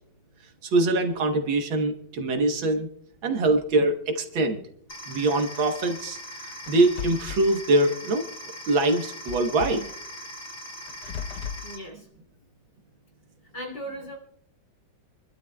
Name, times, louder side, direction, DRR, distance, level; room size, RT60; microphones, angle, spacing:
voice 1, 0.6-2.9 3.2-4.6 5.1-8.2 8.7-9.9, right 2 dB, 75° right, 4 dB, 1.9 m, -23 dB
sound 1, 4.9-11.8, equal, 55° left, 3.8 m, -40 dB
sound 2, 6.7-7.5 9.3-9.9 10.9-11.7, left 7 dB, 70° left, 1.0 m, -36 dB
voice 2, 11.6-12.1 13.5-14.2, equal, 35° left, 1 dB, 3.2 m, -37 dB
27.5 x 12.0 x 2.3 m, 0.69 s
omnidirectional pair, 2.2 m